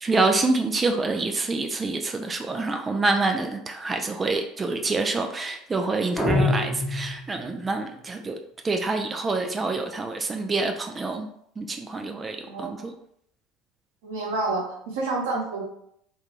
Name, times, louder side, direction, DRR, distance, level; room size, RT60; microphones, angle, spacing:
voice 1, 0.0-8.4 8.6-11.3 11.6-12.9, right 3 dB, 25° right, 5 dB, 0.3 m, -26 dB
sound 1, 6.2-7.6, left 2 dB, ahead, 0.8 m, -25 dB
voice 2, 12.5-12.8 14.0-15.6, right 3 dB, 65° right, -2 dB, 0.8 m, -29 dB
2.3 x 2.3 x 3.0 m, 0.71 s
figure-of-eight pair, 65°, 0 cm